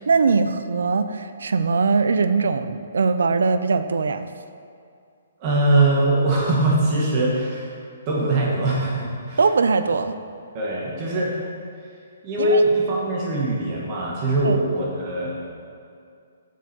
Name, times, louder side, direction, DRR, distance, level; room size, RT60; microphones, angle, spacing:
voice 1, 0.0-4.3 9.4-10.1 12.4-12.6 14.4-14.6, right 4 dB, 80° right, 11 dB, 0.5 m, -21 dB
voice 2, 5.4-7.7 8.1-9.4 10.5-11.3 12.2-15.4, right 2 dB, 20° right, -4 dB, 1.4 m, -21 dB
7.3 x 7.2 x 5.4 m, 2.4 s
hypercardioid pair, 180°, 0 cm